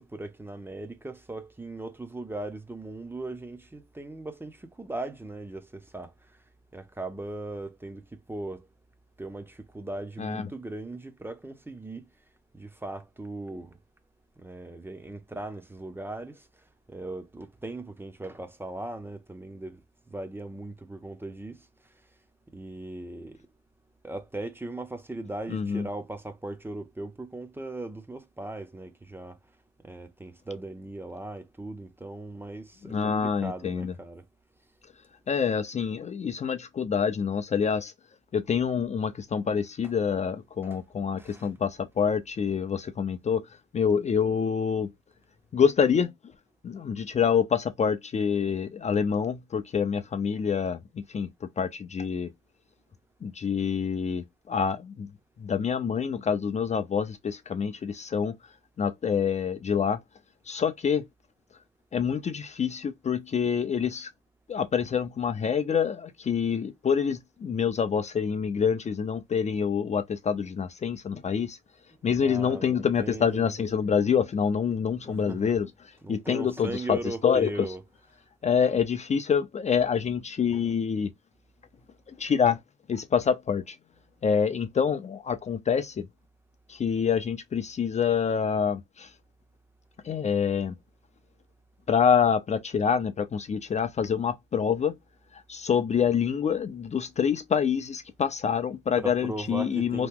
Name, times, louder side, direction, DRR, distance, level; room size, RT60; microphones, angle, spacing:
voice 1, 0.0-6.1 6.7-8.7 9.2-12.0 12.5-13.8 14.4-16.5 16.9-19.8 20.1-21.7 22.5-23.4 24.0-29.4 29.8-34.3 40.6-40.8 41.2-41.5 72.2-73.5 75.1-75.5 76.0-77.8 99.0-100.1, right 2 dB, 10° right, 0.6 m, -38 dB
voice 2, 10.2-10.5 25.5-25.9 32.8-33.9 35.3-37.9 38.3-43.4 43.7-44.9 45.5-46.1 46.6-52.3 53.2-55.1 55.4-58.3 58.8-60.0 60.5-61.1 61.9-64.1 64.5-71.6 72.0-77.7 78.4-81.1 82.1-82.6 82.9-83.8 84.2-86.1 86.7-89.1 90.0-90.8 91.9-94.9 95.3-100.1, left 7 dB, 35° left, 0.5 m, -26 dB
2.9 x 2.1 x 3.5 m
cardioid pair, 90°, 20 cm